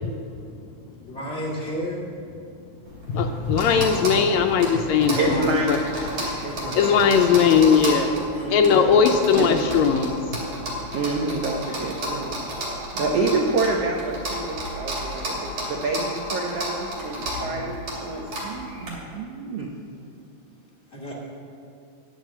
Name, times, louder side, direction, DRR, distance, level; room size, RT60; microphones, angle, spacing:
voice 1, 1.1-2.0 5.1-5.8 6.4-7.0 8.3-8.5 9.2-9.5 13.1-13.2 17.3-17.6 20.9-21.1, equal, 20° left, -5 dB, 2.3 m, -33 dB
sound 1, 2.9-18.9, equal, 50° right, 3.9 m, -32 dB
voice 2, 3.1-5.4 5.7-5.8 6.7-8.1 8.5-10.1, left 6 dB, 80° left, 4 dB, 1.7 m, -19 dB
voice 3, 5.2-6.8 8.3-8.9 9.4-9.5 10.9-12.4 12.9-19.7, right 3 dB, 75° right, 1 dB, 1.5 m, -28 dB
10.5 x 7.2 x 7.3 m, 2.5 s
omnidirectional pair, 3.7 m